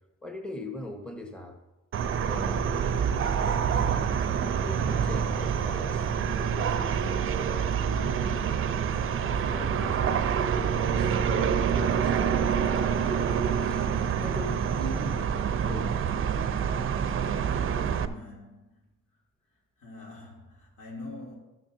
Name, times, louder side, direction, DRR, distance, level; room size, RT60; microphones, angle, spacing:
voice 1, 0.2-1.6 2.3-2.8 3.3-4.1 4.6-8.6 9.3-10.2 10.8-13.3 13.6-13.9 14.1-15.2 15.5-16.1, left 1 dB, 5° left, 4 dB, 1.0 m, -40 dB
sound 1, 1.9-18.1, right 7 dB, 45° right, 0.6 m, -27 dB
voice 2, 17.8-18.8 19.8-21.4, left 2 dB, 80° left, -3 dB, 3.0 m, -44 dB
12.5 x 7.1 x 2.7 m, 1.0 s
cardioid pair, 90°, 30 cm